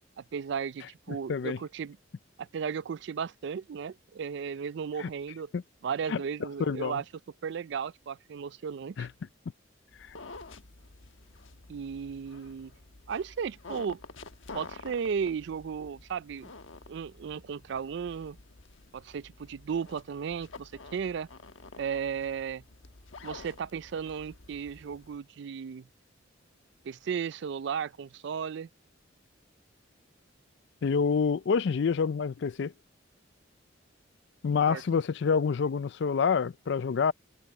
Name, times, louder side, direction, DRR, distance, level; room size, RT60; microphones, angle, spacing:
voice 1, 0.2-2.0 2.4-5.5 5.8-7.0 7.4-9.1 11.7-12.7 13.1-14.0 14.5-16.5 16.9-18.4 18.9-21.3 21.8-22.6 23.2-25.9 26.8-28.7 34.7-34.8, right 6 dB, 60° right, 0.4 m, -35 dB
voice 2, 6.7-7.0 9.0-9.1 30.8-32.7 34.4-37.1, left 5 dB, 60° left, 0.4 m, -27 dB
sound 1, 9.9-25.2, left 3 dB, 90° left, 1.2 m, -49 dB
head